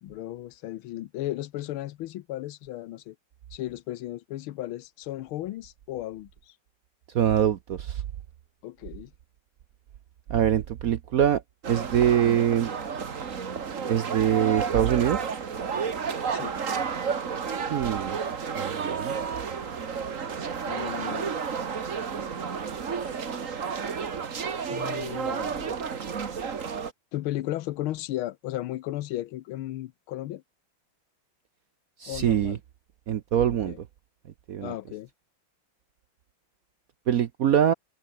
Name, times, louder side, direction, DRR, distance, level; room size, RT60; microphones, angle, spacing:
voice 1, 0.0-3.2 3.5-6.5 8.6-9.1 16.3-16.6 20.3-20.4 20.6-21.3 24.7-25.8 27.1-30.4 32.1-32.6 33.5-33.8 34.6-35.1, left 14 dB, 85° left, 1.6 m, -35 dB
voice 2, 7.1-8.0 10.3-11.4 11.7-12.7 13.9-15.2 17.7-18.2 18.6-19.2 32.0-32.6 33.1-33.7 34.5-34.7 37.1-37.7, right 10 dB, 65° right, 0.9 m, -23 dB
sound 1, 11.6-26.9, right 6 dB, 40° right, 1.8 m, -31 dB
omnidirectional pair, 2.3 m